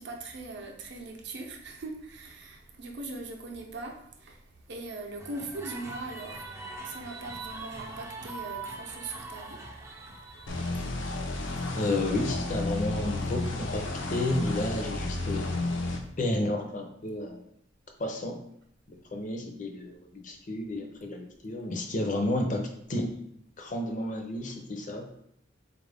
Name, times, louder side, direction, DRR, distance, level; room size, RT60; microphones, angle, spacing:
voice 1, 0.0-11.1 11.4-11.8, right 2 dB, 65° right, 0.6 m, -41 dB
sound 1, 5.2-10.7, right 3 dB, 15° right, 0.4 m, -42 dB
sound 2, 10.5-16.0, left 2 dB, 85° left, 0.6 m, -32 dB
voice 2, 11.7-15.5 16.2-17.5 18.0-18.4 19.1-23.1 23.6-25.1, left 1 dB, 45° left, 0.6 m, -31 dB
4.0 x 2.5 x 3.4 m
head